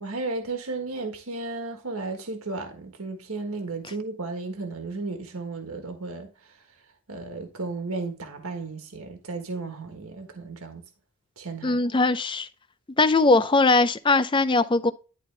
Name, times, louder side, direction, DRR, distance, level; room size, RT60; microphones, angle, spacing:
voice 1, 0.0-6.3 7.1-10.8 11.4-11.8, right 3 dB, 75° right, 1.4 m, -34 dB
voice 2, 11.6-12.5 13.0-14.9, left 3 dB, 20° left, 0.5 m, -20 dB
11.0 x 4.2 x 3.3 m
head